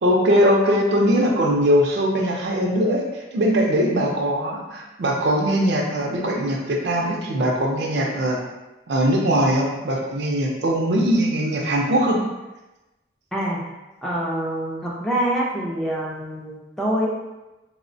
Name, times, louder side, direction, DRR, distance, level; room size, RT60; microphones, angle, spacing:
voice 1, 0.0-3.1 3.3-8.4 8.9-12.2, equal, 75° right, 0 dB, 0.5 m, -21 dB
voice 2, 14.0-17.1, right 1 dB, 5° left, -5 dB, 0.3 m, -25 dB
3.0 x 2.0 x 2.6 m, 1.0 s
head